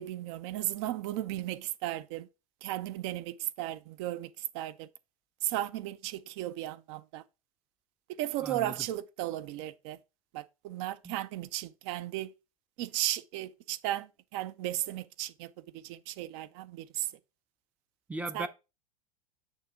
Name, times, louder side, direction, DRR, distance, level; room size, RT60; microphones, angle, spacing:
voice 1, 0.0-2.3 2.6-4.9 5.4-7.2 8.1-10.0 10.3-12.3 12.8-17.1 18.3-18.5, right 14 dB, 50° right, 0.5 m, -35 dB
voice 2, 8.4-8.7 11.0-11.1 18.1-18.5, right 2 dB, 5° right, 0.5 m, -37 dB
6.5 x 2.8 x 5.7 m
hypercardioid pair, 95°, 18 cm